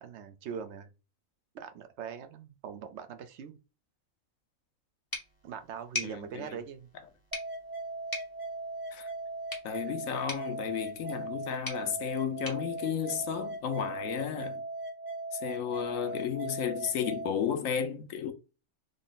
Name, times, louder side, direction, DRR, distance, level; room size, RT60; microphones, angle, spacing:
voice 1, 0.0-0.9 1.5-3.6 5.4-6.9, right 7 dB, 65° right, 0.8 m, -42 dB
sound 1, 5.1-13.8, left 1 dB, 15° left, 1.0 m, -44 dB
voice 2, 6.0-6.6 8.9-9.1 9.6-14.6 15.3-18.3, left 8 dB, 80° left, 1.1 m, -33 dB
sound 2, 7.3-17.3, right 2 dB, 35° right, 1.2 m, -39 dB
3.8 x 2.1 x 3.9 m
omnidirectional pair, 1.4 m